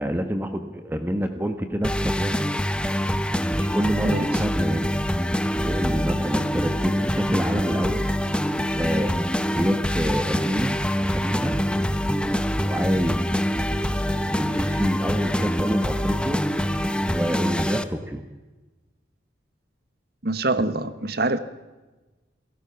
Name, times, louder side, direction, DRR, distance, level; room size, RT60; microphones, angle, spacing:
voice 1, 0.0-2.4 3.5-4.9 5.6-8.0 8.6-11.6 12.5-13.3 14.2-16.4 17.1-18.2, equal, 10° right, 7 dB, 1.2 m, -27 dB
sound 1, 1.8-17.8, equal, 5° left, 0.9 m, -25 dB
voice 2, 20.2-21.4, right 2 dB, 55° right, 13 dB, 1.3 m, -24 dB
27.5 x 17.5 x 5.8 m, 1.2 s
head